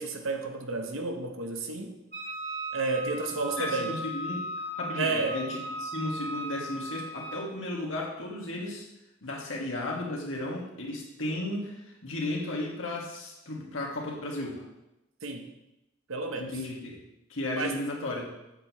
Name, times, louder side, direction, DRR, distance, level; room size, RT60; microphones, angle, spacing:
voice 1, 0.0-2.0 2.7-4.0 5.0-5.4 15.2-15.5 16.1-16.5 17.5-17.8, right 3 dB, 80° right, 4 dB, 1.0 m, -31 dB
Wind instrument woodwind instrument, 2.1-7.5, right 1 dB, 50° right, 1.9 m, -37 dB
voice 2, 3.6-4.5 4.8-8.9 9.2-14.6 16.4-17.0 17.3-18.3, left 1 dB, 75° left, -3 dB, 1.8 m, -34 dB
7.8 x 7.7 x 3.1 m, 0.92 s
head